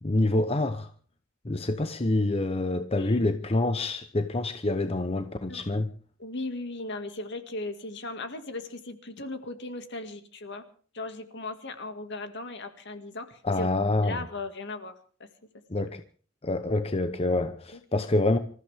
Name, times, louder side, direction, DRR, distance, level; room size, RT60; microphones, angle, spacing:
voice 1, 0.0-0.9 1.4-5.9 13.4-14.2 15.7-16.0 16.4-18.4, left 2 dB, 30° left, 0.9 m, -26 dB
voice 2, 3.0-3.3 5.5-5.6 6.2-10.6 10.9-13.7 14.0-15.3 17.7-17.8, left 2 dB, 60° left, 2.1 m, -37 dB
26.0 x 14.5 x 3.6 m
head